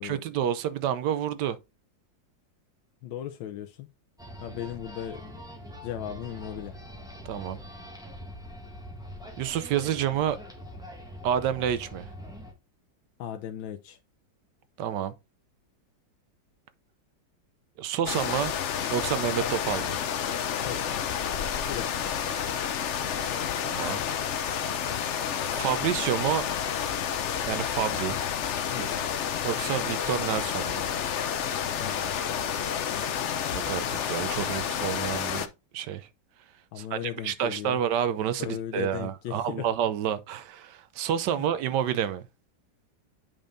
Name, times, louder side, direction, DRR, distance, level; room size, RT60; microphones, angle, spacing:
voice 1, 0.0-1.6 7.2-7.6 9.4-10.4 11.2-12.1 14.8-15.1 17.8-18.5 18.9-20.0 23.6-24.0 24.6-24.7 25.5-26.5 27.5-28.2 28.8-28.9 29.4-30.8 33.5-36.1 36.8-42.2, right 9 dB, 75° right, 1.1 m, -29 dB
voice 2, 3.0-3.9 4.4-5.4 5.8-6.8 13.2-14.0 20.6-20.9 21.7-22.3 28.7-29.0 31.8-32.3 32.9-33.2 36.7-37.8 38.4-39.7, left 11 dB, 85° left, 1.4 m, -37 dB
sound 1, 4.2-12.5, equal, ahead, 1.7 m, -43 dB
sound 2, 18.1-35.5, left 8 dB, 70° left, 0.7 m, -30 dB
8.9 x 5.2 x 2.5 m
omnidirectional pair, 2.0 m